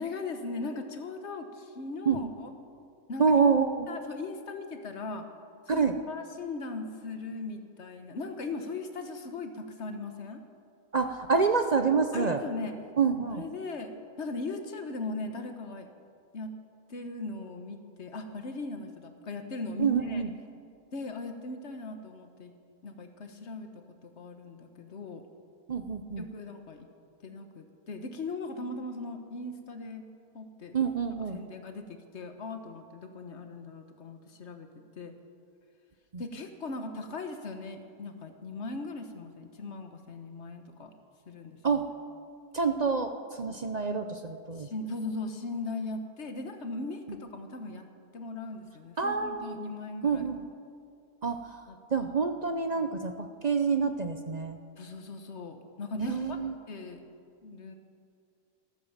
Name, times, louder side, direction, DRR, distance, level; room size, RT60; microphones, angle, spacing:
voice 1, 0.0-2.5 3.1-3.4 3.9-5.3 5.7-10.4 12.1-12.7 13.3-15.9 16.3-16.5 16.9-20.2 20.9-22.5 22.8-25.2 26.2-26.9 27.2-30.1 30.3-30.8 31.3-34.7 35.0-35.1 36.2-40.9 41.2-41.8 44.5-47.8 48.1-50.2 51.7-51.8 52.7-52.9 54.8-57.1 57.4-57.7, left 3 dB, 50° left, 7 dB, 1.4 m, -39 dB
voice 2, 3.2-3.9 5.7-5.9 10.9-12.4 13.0-13.4 19.8-20.3 25.7-26.2 30.7-31.4 36.1-36.2 41.6-41.9 42.5-44.7 49.0-49.7 50.0-50.4 51.2-51.6 51.9-54.6 56.0-56.6, right 5 dB, 50° right, 7 dB, 0.5 m, -27 dB
14.0 x 13.0 x 7.3 m, 2.3 s
omnidirectional pair, 1.6 m